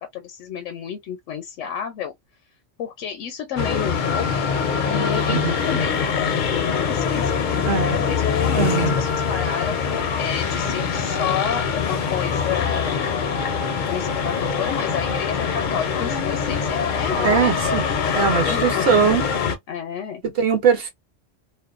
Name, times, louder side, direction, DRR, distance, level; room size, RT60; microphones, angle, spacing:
voice 1, 0.0-2.1 2.8-4.3 4.8-13.2 13.9-17.8 18.1-20.2, left 8 dB, 80° left, 0.9 m, -31 dB
sound 1, 3.6-19.6, left 6 dB, 55° left, 0.5 m, -23 dB
voice 2, 7.7-8.0 8.5-8.9 17.2-17.8 18.2-19.3 20.4-20.9, right 6 dB, 60° right, 0.9 m, -20 dB
2.5 x 2.1 x 2.3 m
omnidirectional pair, 1.2 m